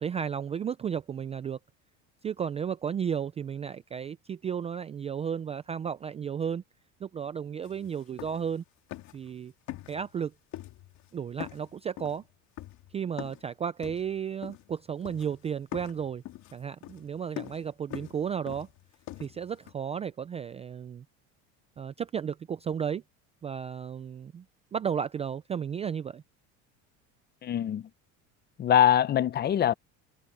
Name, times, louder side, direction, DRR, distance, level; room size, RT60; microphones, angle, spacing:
voice 1, 0.0-1.6 2.2-6.6 7.0-8.6 9.1-9.5 9.9-10.3 11.1-12.2 12.9-16.2 16.5-18.7 19.2-21.0 21.8-23.0 23.4-24.4 24.7-26.2, right 7 dB, 20° right, 0.3 m, -33 dB
sound 1, 7.6-7.7 8.0-8.6 8.9-9.3 9.7-10.2 10.5-11.1 11.4-13.5 13.8-14.8 15.1-15.4 15.7-19.7, left 15 dB, 55° left, 2.8 m, -43 dB
voice 2, 27.4-27.8 28.6-29.7, left 10 dB, 30° left, 0.6 m, -23 dB
cardioid pair, 145°, 34 cm